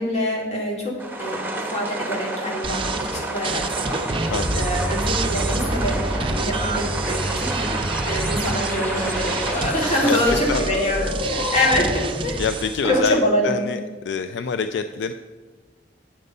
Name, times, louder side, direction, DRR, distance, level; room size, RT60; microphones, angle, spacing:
voice 1, 0.0-7.7 8.1-12.4 12.8-13.6, left 1 dB, 40° left, -2 dB, 2.4 m, -25 dB
sound 1, 1.0-10.2, right 2 dB, 10° right, 1.1 m, -30 dB
sound 2, 2.6-13.0, right 4 dB, 30° right, 0.5 m, -29 dB
voice 2, 4.3-4.6 10.0-10.7 12.4-13.8 14.0-15.1, left 5 dB, 70° left, 10 dB, 0.4 m, -26 dB
sound 3, 4.3-12.1, equal, 10° left, 1.8 m, -28 dB
8.9 x 6.7 x 5.3 m, 1.3 s
head